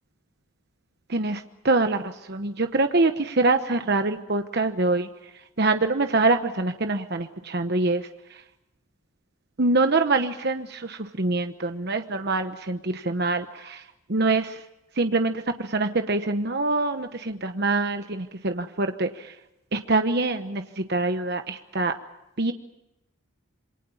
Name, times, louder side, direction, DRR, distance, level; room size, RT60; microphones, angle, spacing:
voice 1, 1.1-5.1 5.6-8.0 9.6-13.8 14.1-14.6 15.0-15.4 15.7-19.1 19.7-21.9 22.4-22.5, right 3 dB, 50° right, 7 dB, 1.0 m, -24 dB
27.5 x 23.0 x 7.2 m, 0.91 s
head